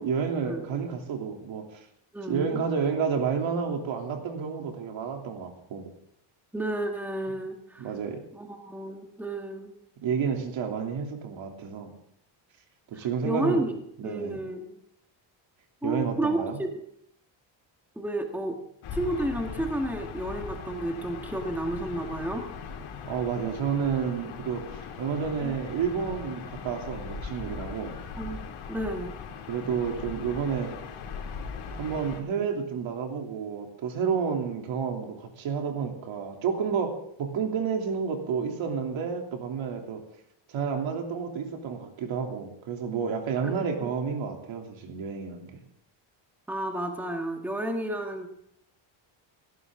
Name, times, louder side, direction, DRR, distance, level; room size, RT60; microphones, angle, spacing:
voice 1, 0.0-1.8 2.3-5.9 7.8-8.2 10.0-11.9 12.9-13.7 14.0-14.4 15.8-16.6 23.0-28.0 29.5-30.7 31.8-40.0 40.5-45.6, right 6 dB, 70° right, 3 dB, 3.1 m, -30 dB
voice 2, 2.1-2.6 6.5-7.9 8.3-9.7 13.2-13.8 14.0-14.8 15.8-16.7 17.9-18.6 18.9-22.5 25.4-25.5 28.2-28.4 28.7-29.1 43.4-43.9 46.5-48.3, right 1 dB, 5° right, 3 dB, 1.6 m, -31 dB
Gull seagull / Ocean, 18.8-32.2, left 5 dB, 85° left, 3.0 m, -39 dB
19.0 x 16.5 x 3.7 m, 0.72 s
cardioid pair, 165°, 48 cm